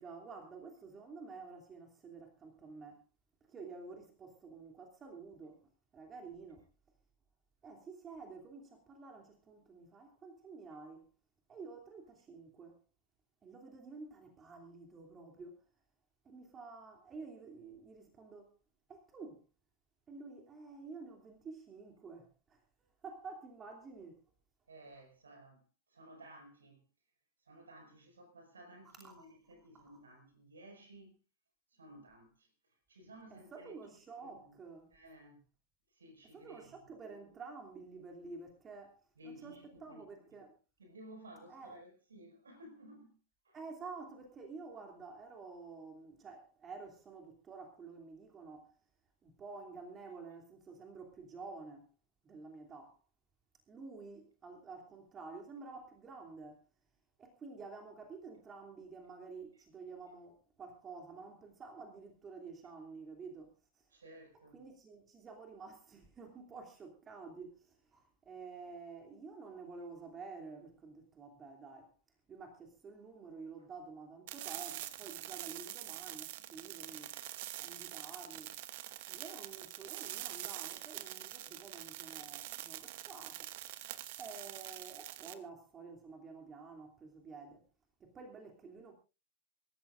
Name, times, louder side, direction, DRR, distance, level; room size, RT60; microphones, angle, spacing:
voice 1, 0.0-3.0 3.5-6.7 7.6-11.1 11.5-12.8 13.4-15.6 16.2-18.5 18.9-19.4 20.1-22.6 23.0-24.2 28.8-29.3 29.7-29.8 33.3-34.9 36.3-40.6 41.5-41.8 43.5-48.8 49.2-51.9 52.2-53.0 53.7-56.7 57.2-63.9 64.5-71.9 72.3-77.2 77.6-78.5 79.1-83.5 84.2-87.6 88.0-88.9, right 4 dB, 20° right, 3.0 m, -50 dB
voice 2, 24.7-26.9 27.4-31.2 31.7-33.7 34.2-34.6 34.9-35.4 35.9-36.9 39.2-40.0 40.8-43.2 43.4-43.6 63.9-64.6, right 1 dB, 70° right, 5.7 m, -56 dB
sound 1, 74.3-85.3, right 15 dB, 50° right, 1.0 m, -45 dB
26.5 x 14.0 x 2.6 m
figure-of-eight pair, 90°, 0 cm